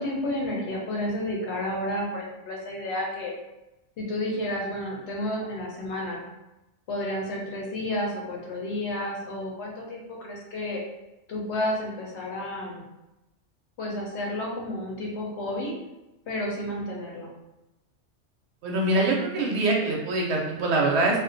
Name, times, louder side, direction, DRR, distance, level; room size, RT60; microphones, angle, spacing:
voice 1, 0.0-3.3 4.0-6.2 6.9-10.8 11.3-12.8 13.8-15.7 16.3-17.3, left 1 dB, 65° left, -2 dB, 0.9 m, -31 dB
voice 2, 18.6-21.2, right 2 dB, 65° right, -2 dB, 0.8 m, -24 dB
2.4 x 2.1 x 2.5 m, 0.97 s
omnidirectional pair, 1.3 m